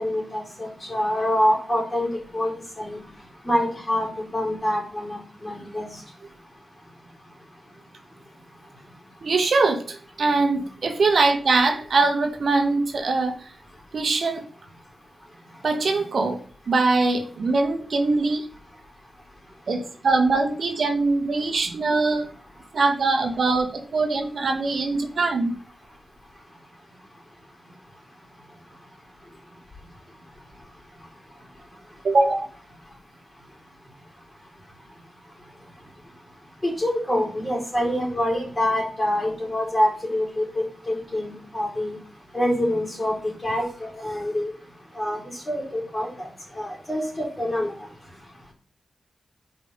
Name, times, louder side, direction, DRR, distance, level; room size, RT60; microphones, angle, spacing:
voice 1, 0.0-3.0 3.4-5.9 36.6-42.0 42.3-44.5 45.0-45.2 45.5-46.3 46.5-47.7, left 1 dB, 25° left, -2 dB, 3.9 m, -26 dB
voice 2, 9.2-13.5 13.9-14.5 15.6-18.5 19.7-22.3 22.7-25.5 32.0-32.5, right 3 dB, 70° right, 5 dB, 1.2 m, -22 dB
5.1 x 5.0 x 5.5 m, 0.41 s
wide cardioid pair, 90°, 0 cm